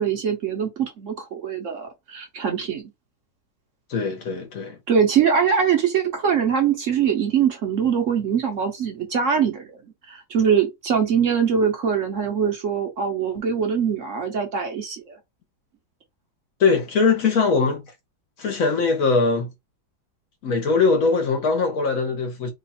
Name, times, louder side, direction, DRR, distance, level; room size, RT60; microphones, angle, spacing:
voice 1, 0.0-2.9 4.9-9.7 10.1-15.2, right 7 dB, 60° right, 1.0 m, -22 dB
voice 2, 3.9-4.8 16.6-17.8 18.4-19.5 20.4-22.5, left 4 dB, 60° left, 1.2 m, -21 dB
3.1 x 2.3 x 4.1 m
omnidirectional pair, 1.7 m